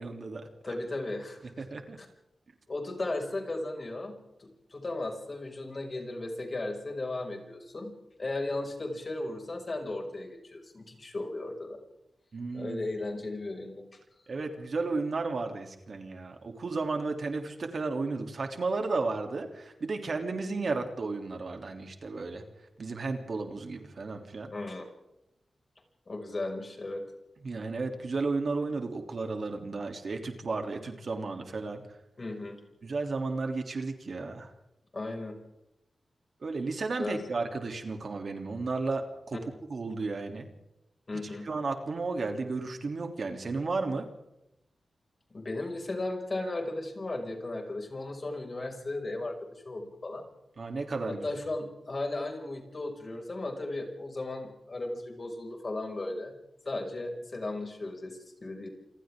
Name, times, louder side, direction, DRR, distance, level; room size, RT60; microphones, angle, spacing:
voice 1, 0.0-0.5 1.6-2.0 12.3-12.8 14.3-22.4 22.8-24.5 27.4-31.8 32.8-34.5 36.4-39.4 39.7-40.5 41.4-44.1 50.6-51.2, right 3 dB, 55° right, 4 dB, 3.1 m, -33 dB
voice 2, 0.6-1.5 2.0-2.1 2.7-7.9 8.2-11.8 12.5-13.8 24.5-24.8 26.1-27.0 32.2-32.6 34.9-35.3 37.0-37.3 41.1-41.5 45.3-49.3 49.6-50.2 51.1-56.3 56.7-58.7, left 2 dB, 40° left, 2 dB, 5.9 m, -36 dB
28.5 x 26.5 x 3.8 m, 0.88 s
wide cardioid pair, 105°, 0 cm